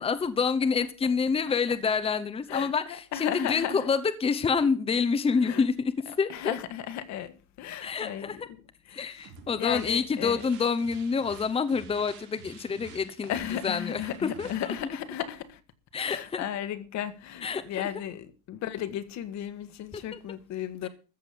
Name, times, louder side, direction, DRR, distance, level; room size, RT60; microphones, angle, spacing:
voice 1, 0.0-5.7 6.1-6.5 7.8-8.5 8.9-13.4 13.6-14.7 15.9-16.4 17.4-17.9 19.9-20.2 20.8-20.9, left 5 dB, 20° left, 0.9 m, -28 dB
voice 2, 3.1-3.9 5.3-5.7 6.1-8.6 8.9-9.1 9.5-10.4 13.3-15.6 16.0-20.9, left 10 dB, 65° left, 1.8 m, -35 dB
sound 1, 9.2-14.7, right 4 dB, 75° right, 4.4 m, -50 dB
14.0 x 7.5 x 6.9 m
cardioid pair, 150°, 30 cm